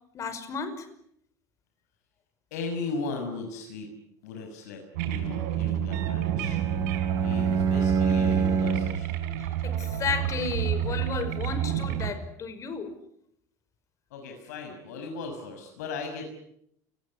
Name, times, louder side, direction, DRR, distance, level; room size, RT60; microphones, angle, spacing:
voice 1, 0.1-0.9 9.6-12.9, left 5 dB, 35° left, 5.6 m, -33 dB
voice 2, 2.5-3.9 4.2-4.8 5.1-6.6 7.2-9.2 14.1-16.3, left 4 dB, 90° left, 6.2 m, -37 dB
sound 1, 4.9-12.1, right 11 dB, 80° right, 4.7 m, -30 dB
Bowed string instrument, 5.9-9.1, right 6 dB, 40° right, 5.3 m, -26 dB
29.5 x 19.5 x 9.9 m
supercardioid pair, 115°, 9 cm